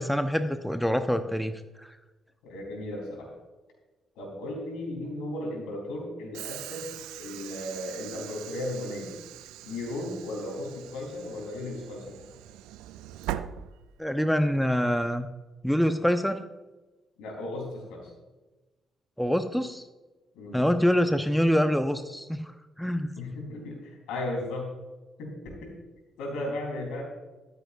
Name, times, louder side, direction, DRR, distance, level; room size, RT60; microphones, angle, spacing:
voice 1, 0.0-1.5 1.8-1.9 14.0-15.3 15.6-16.4 19.2-19.8 20.5-22.5 22.8-23.1, equal, ahead, 9 dB, 0.8 m, -25 dB
voice 2, 2.4-3.3 4.2-9.1 9.6-12.2 17.2-18.1 20.3-20.7 23.2-24.7 25.2-25.7 26.2-27.0, left 1 dB, 70° left, 0 dB, 3.8 m, -35 dB
Train / Sliding door, 6.3-14.3, right 12 dB, 75° right, 0.4 m, -41 dB
13.5 x 13.0 x 2.6 m, 1.1 s
hypercardioid pair, 40°, 0 cm